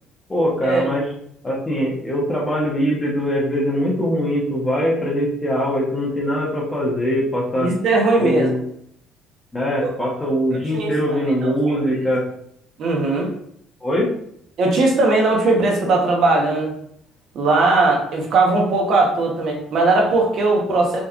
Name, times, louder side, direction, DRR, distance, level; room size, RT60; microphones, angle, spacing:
voice 1, 0.3-1.1 1.4-7.7 8.2-8.6 9.5-12.2 13.8-14.1, equal, 15° left, -4 dB, 1.1 m, -22 dB
voice 2, 7.6-8.5 9.8-9.9 10.7-10.9 11.2-11.8 12.8-13.3 14.6-16.7 17.3-21.0, right 2 dB, 55° right, 0 dB, 1.1 m, -18 dB
5.3 x 3.3 x 2.5 m, 0.69 s
cardioid pair, 130°, 0 cm